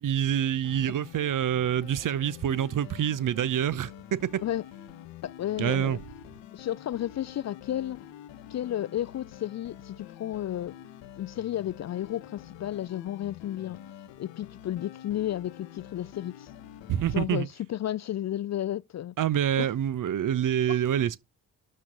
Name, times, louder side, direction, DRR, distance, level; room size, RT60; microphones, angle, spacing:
voice 1, 0.0-4.4 5.6-6.0 16.9-17.5 19.2-21.2, right 10 dB, 45° right, 0.7 m, -26 dB
sound 1, 0.6-17.2, left 11 dB, 70° left, 1.1 m, -47 dB
voice 2, 5.2-6.0 6.5-8.0 8.5-10.7 11.2-13.8 14.2-16.5 17.1-19.1 19.6-19.7 20.7-20.8, left 12 dB, 40° left, 0.5 m, -32 dB
12.0 x 4.3 x 6.5 m
hypercardioid pair, 40°, 46 cm